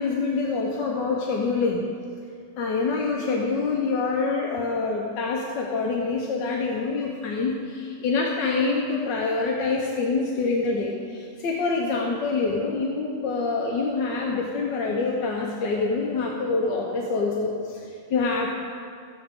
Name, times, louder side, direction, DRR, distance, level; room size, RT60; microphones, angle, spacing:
voice 1, 0.0-1.8 2.6-18.5, left 4 dB, 85° left, -1 dB, 1.6 m, -26 dB
13.5 x 9.2 x 3.7 m, 2.2 s
omnidirectional pair, 1.9 m